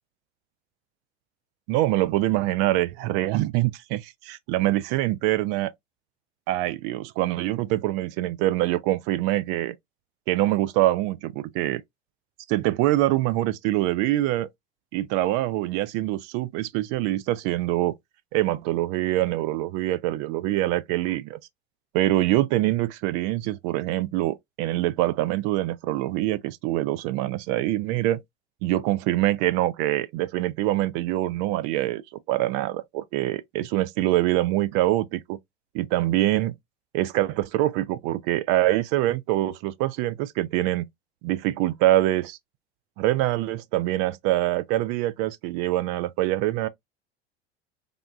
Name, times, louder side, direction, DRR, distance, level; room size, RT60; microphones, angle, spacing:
voice 1, 1.7-5.7 6.5-9.7 10.3-11.8 12.5-14.5 14.9-17.9 18.3-21.4 21.9-28.2 28.6-32.0 32.3-35.4 35.7-36.5 36.9-40.9 41.2-42.4 43.0-46.7, right 15 dB, 50° right, 0.5 m, -24 dB
3.5 x 2.3 x 2.4 m
figure-of-eight pair, 80°, 34 cm